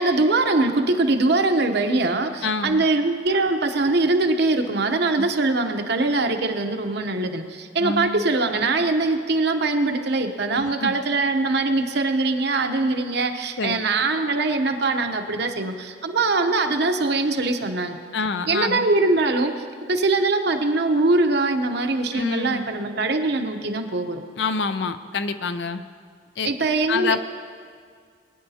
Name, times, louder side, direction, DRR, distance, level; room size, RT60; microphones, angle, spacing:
voice 1, 0.0-18.0 18.5-24.2 26.4-27.2, right 2 dB, 60° right, 6 dB, 0.9 m, -22 dB
voice 2, 2.4-2.8 5.2-5.3 7.8-8.2 10.5-11.0 13.6-13.8 18.1-18.9 22.1-22.6 24.4-25.8 26.4-26.5 26.9-27.2, left 4 dB, 70° left, 10 dB, 0.5 m, -27 dB
22.0 x 9.8 x 2.8 m, 2.1 s
head